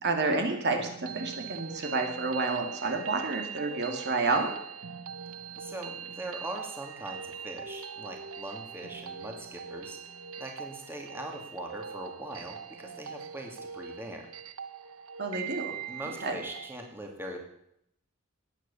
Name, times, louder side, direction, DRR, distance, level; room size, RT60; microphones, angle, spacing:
voice 1, 0.0-4.5 15.2-15.7 16.2-16.4, right 3 dB, 50° right, 4 dB, 2.4 m, -29 dB
sound 1, 0.8-16.8, right 7 dB, 85° right, 0.9 m, -42 dB
voice 2, 5.6-10.0 10.4-14.3 15.9-17.4, right 1 dB, 10° right, 2 dB, 2.3 m, -41 dB
19.0 x 9.2 x 7.0 m, 0.75 s
head